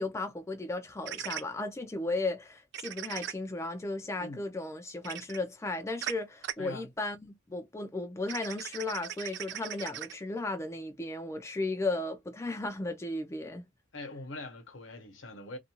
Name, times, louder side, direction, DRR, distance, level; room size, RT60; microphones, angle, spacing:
voice 1, 0.0-13.6, left 2 dB, 15° left, 0.3 m, -35 dB
sound 1, 1.1-1.4 2.7-3.3 5.0-5.4 6.0-6.1 6.4-6.5 8.3-10.1, right 11 dB, 55° right, 0.4 m, -38 dB
voice 2, 13.9-15.6, left 2 dB, 65° left, 0.9 m, -43 dB
2.4 x 2.2 x 2.9 m
head